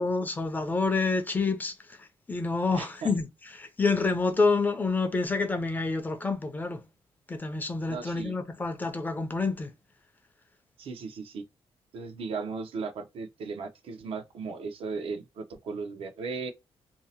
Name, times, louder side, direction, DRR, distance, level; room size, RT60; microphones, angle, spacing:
voice 1, 0.0-6.8 7.3-9.7, left 3 dB, 20° left, 0.4 m, -28 dB
voice 2, 2.7-3.1 7.9-8.3 10.8-11.4 11.9-16.5, right 4 dB, 75° right, 0.6 m, -36 dB
2.7 x 2.0 x 2.7 m
wide cardioid pair, 160°, 10 cm